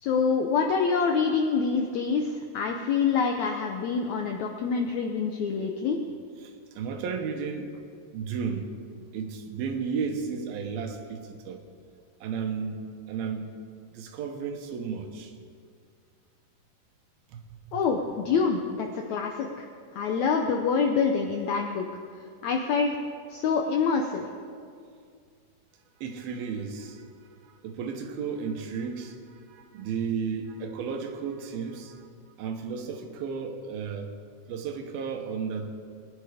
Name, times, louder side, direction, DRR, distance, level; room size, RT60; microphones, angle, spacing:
voice 1, 0.0-6.0 17.7-19.7 19.9-21.9 22.4-22.9 23.3-24.3, left 5 dB, 85° left, 3 dB, 1.6 m, -26 dB
voice 2, 6.4-7.8 8.1-8.7 9.1-11.6 12.2-12.8 13.1-13.5 13.9-15.3 17.3-17.8 26.0-32.1 32.4-34.1 34.5-35.7, right 6 dB, 75° right, 5 dB, 2.9 m, -34 dB
21.0 x 10.0 x 5.0 m, 2.2 s
omnidirectional pair, 4.4 m